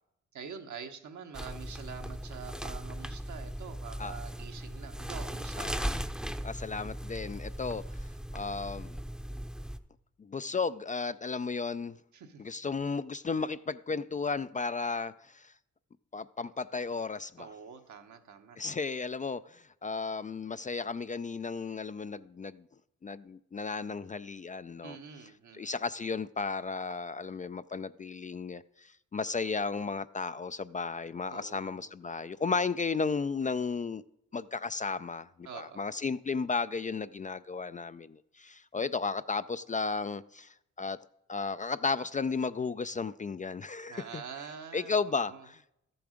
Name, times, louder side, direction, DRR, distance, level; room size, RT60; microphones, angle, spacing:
voice 1, 0.3-5.9 12.1-12.4 17.4-18.6 24.8-25.8 31.3-31.9 35.4-35.8 43.9-45.5, right 6 dB, 70° right, 1.2 m, -46 dB
sound 1, 1.3-9.8, equal, ahead, 0.7 m, -38 dB
voice 2, 5.6-6.0 6.4-7.8 8.3-9.0 10.2-12.0 12.4-15.5 16.1-17.5 18.6-22.6 23.0-25.0 25.5-34.0 34.3-41.0 41.3-44.2 44.7-45.6, left 4 dB, 25° left, 0.3 m, -34 dB
13.5 x 7.0 x 5.1 m
cardioid pair, 55°, 30 cm